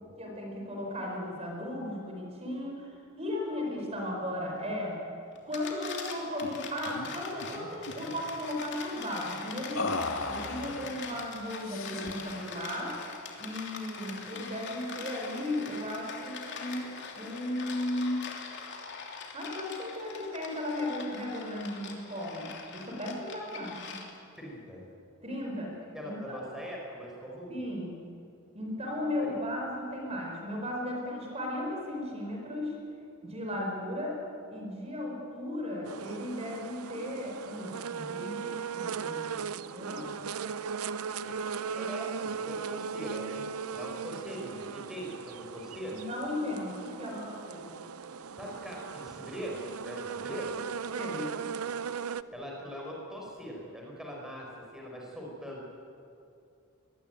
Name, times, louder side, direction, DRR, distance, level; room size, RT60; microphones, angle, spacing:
voice 1, 0.2-5.0 5.4-13.0 13.4-18.6 19.3-24.0 25.2-25.7 26.0-26.2 27.5-27.9 28.5-32.7 33.2-34.2 34.5-39.4 39.7-40.3 45.9-47.7 50.9-51.3, left 1 dB, 30° right, 0 dB, 4.8 m, -36 dB
sound 1, 5.3-24.4, left 5 dB, 55° left, 3.2 m, -43 dB
sound 2, 6.4-6.6 6.9-7.1 7.4-8.2 9.7-11.0 11.6-12.2, left 3 dB, 70° left, 2.0 m, -36 dB
voice 2, 24.4-24.8 25.9-27.6 41.2-41.3 41.7-46.0 48.3-50.6 52.3-55.7, equal, 5° right, -2 dB, 4.9 m, -41 dB
sound 3, 35.8-52.2, right 6 dB, 90° right, 0.6 m, -38 dB
23.5 x 21.5 x 9.2 m, 2.6 s
head